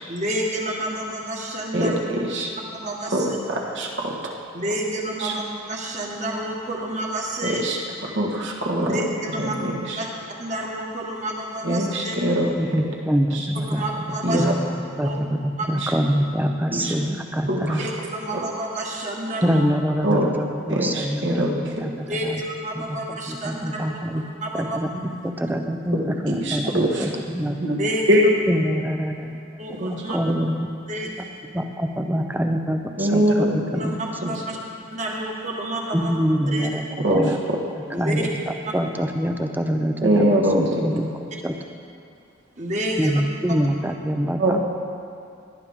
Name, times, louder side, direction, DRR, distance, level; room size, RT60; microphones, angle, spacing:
voice 1, 0.1-2.0 2.7-3.4 4.5-7.6 8.9-9.5 10.0-10.1 10.4-12.1 13.7-14.4 15.0-15.2 15.6-15.7 17.8-19.6 22.1-23.8 24.2-24.8 27.8-28.3 29.6-30.2 30.9-31.1 33.7-34.6 34.9-36.1 36.5-36.7 37.9-38.3 42.6-43.2 43.5-43.6, right 1 dB, 35° right, -1 dB, 1.6 m, -29 dB
voice 2, 1.7-2.5 3.1-4.4 5.2-5.3 7.4-9.0 9.4-10.0 11.6-12.5 13.3-13.4 14.2-14.5 15.8-15.9 16.7-16.9 17.5-17.9 18.3-18.4 20.0-20.3 20.7-21.8 26.4-27.1 27.6-27.8 28.1-28.2 29.8-29.9 30.3-30.4 33.0-33.5 34.2-34.3 37.0-37.4 40.0-40.8 44.4-44.6, right 1 dB, 60° right, -2 dB, 1.7 m, -23 dB
voice 3, 12.5-17.9 19.4-22.4 22.7-24.3 24.5-27.6 28.5-30.7 31.0-31.1 31.5-33.2 33.5-34.0 35.9-37.4 37.9-40.3 40.6-41.1 41.4-41.5 43.0-44.6, equal, 10° right, 5 dB, 0.6 m, -25 dB
18.0 x 11.0 x 3.7 m, 2.4 s
head